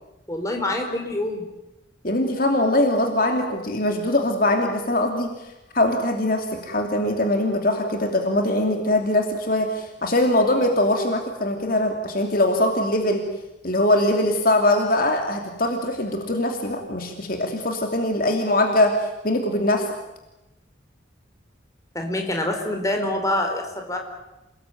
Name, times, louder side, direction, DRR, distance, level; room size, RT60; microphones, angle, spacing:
voice 1, 0.3-1.4 21.9-24.0, left 1 dB, 15° left, 3 dB, 4.2 m, -26 dB
voice 2, 2.0-5.3 5.7-13.2 13.6-18.9 19.2-19.9, left 1 dB, 50° left, 3 dB, 2.8 m, -22 dB
28.0 x 19.5 x 9.3 m, 0.95 s
head